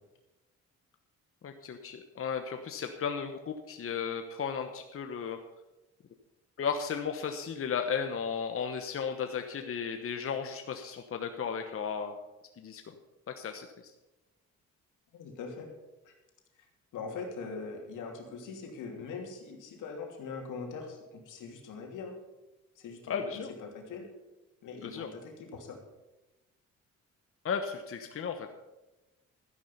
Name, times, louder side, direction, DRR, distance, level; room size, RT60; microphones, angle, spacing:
voice 1, 1.4-5.4 6.6-12.2 12.6-12.8 13.4-13.7 23.1-23.5 24.8-25.1 27.4-28.5, left 6 dB, 45° left, 6 dB, 1.1 m, -34 dB
voice 2, 15.1-15.7 16.0-16.1 16.9-22.1 22.8-24.0 24.6-25.8, left 4 dB, 85° left, 2 dB, 2.7 m, -42 dB
12.5 x 10.0 x 5.5 m, 1.0 s
cardioid pair, 90°, 30 cm